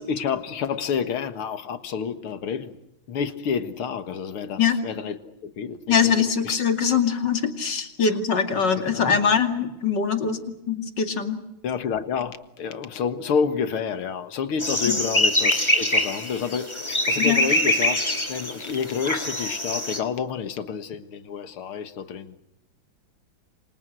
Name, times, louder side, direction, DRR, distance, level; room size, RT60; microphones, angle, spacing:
voice 1, 0.0-2.8 3.1-6.6 8.0-8.2 8.9-9.1 11.6-22.4, left 6 dB, 85° left, 11 dB, 2.5 m, -29 dB
voice 2, 5.9-10.4 10.7-11.4 14.9-15.0 17.2-17.4, left 6 dB, 55° left, 7 dB, 3.1 m, -22 dB
sound 1, 14.6-20.0, left 1 dB, 15° left, 2.4 m, -24 dB
28.5 x 26.0 x 6.3 m, 0.89 s
omnidirectional pair, 2.3 m